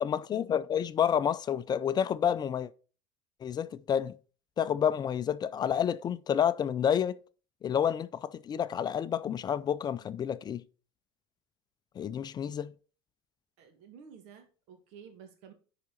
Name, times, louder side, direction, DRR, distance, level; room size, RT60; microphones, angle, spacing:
voice 1, 0.0-2.7 3.4-4.1 4.6-7.2 7.6-10.6 12.0-12.7, left 8 dB, 35° left, 0.5 m, -29 dB
voice 2, 13.6-15.5, right 7 dB, 65° right, 2.0 m, -52 dB
10.0 x 4.9 x 4.2 m
hypercardioid pair, 80°, 12 cm